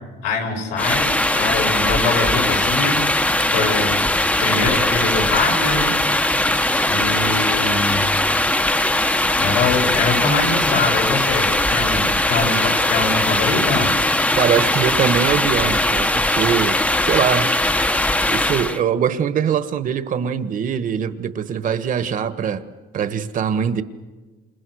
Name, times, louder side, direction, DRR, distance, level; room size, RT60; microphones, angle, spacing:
voice 1, 0.2-3.1 3.5-4.0 4.4-6.0 6.3-8.1 9.3-14.0, left 3 dB, 85° left, 6.3 m, -24 dB
sound 1, 0.8-18.8, left 1 dB, 10° left, 0.9 m, -19 dB
voice 2, 14.4-17.6 18.3-22.6 22.9-23.8, right 8 dB, 50° right, 1.5 m, -22 dB
29.0 x 28.0 x 6.5 m
cardioid pair, 110°, 17 cm